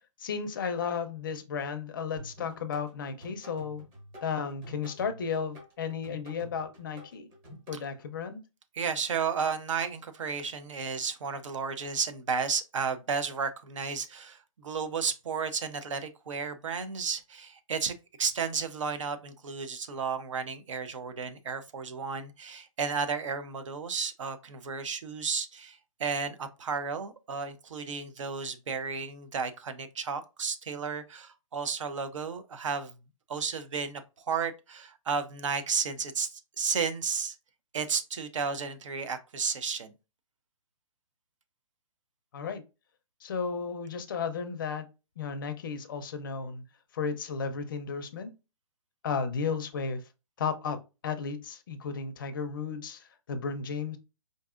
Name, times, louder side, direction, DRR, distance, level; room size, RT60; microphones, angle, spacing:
voice 1, 0.2-3.8 4.2-7.3 7.7-8.4 42.3-42.6 43.2-44.9 45.2-46.6 46.9-48.3 49.0-50.0 50.4-50.8 51.0-54.0, left 6 dB, 35° left, 0.5 m, -34 dB
sound 1, 2.2-7.8, equal, 20° right, 1.1 m, -48 dB
voice 2, 8.7-32.9 33.3-37.4 37.7-39.9, right 5 dB, 60° right, 0.6 m, -33 dB
4.6 x 2.6 x 2.4 m
hypercardioid pair, 165°, 18 cm